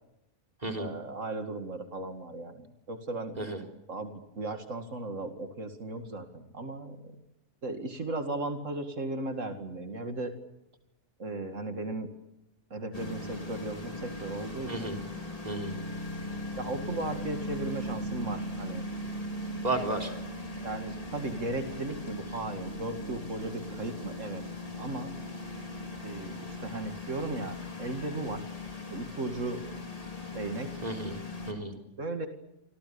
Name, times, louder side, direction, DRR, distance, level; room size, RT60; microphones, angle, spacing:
voice 1, 0.8-3.4 3.9-7.1 7.6-10.3 11.2-12.1 12.7-14.9 16.6-18.8 20.6-24.4 24.8-25.1 26.0-28.4 28.9-29.6 30.3-30.7 32.0-32.3, right 2 dB, 90° right, 6 dB, 2.5 m, -36 dB
sound 1, 12.9-31.5, left 1 dB, 30° left, 3.7 m, -39 dB
voice 2, 14.7-15.0 15.4-15.8 19.6-20.1 30.8-31.2 31.5-31.7, right 2 dB, 30° right, 3 dB, 4.1 m, -32 dB
28.5 x 25.0 x 7.0 m, 0.88 s
omnidirectional pair, 1.3 m